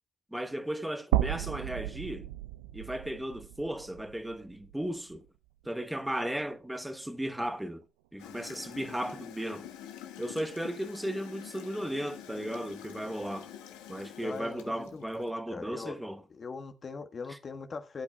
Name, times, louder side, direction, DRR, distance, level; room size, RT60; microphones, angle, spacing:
voice 1, 0.3-2.3 2.7-5.2 5.6-7.8 8.1-9.7 10.2-13.5 13.9-16.2 17.3-17.4, right 1 dB, 5° right, 1.4 m, -35 dB
sound 1, 1.1-5.3 5.6-5.7 7.2-7.3, right 14 dB, 85° right, 0.5 m, -34 dB
Gurgling / Toilet flush, 8.2-15.3, left 10 dB, 75° left, 1.5 m, -47 dB
voice 2, 14.2-15.3 15.5-16.0 16.3-18.0, left 4 dB, 40° left, 1.4 m, -41 dB
19.5 x 8.5 x 2.3 m
hypercardioid pair, 50°, 0 cm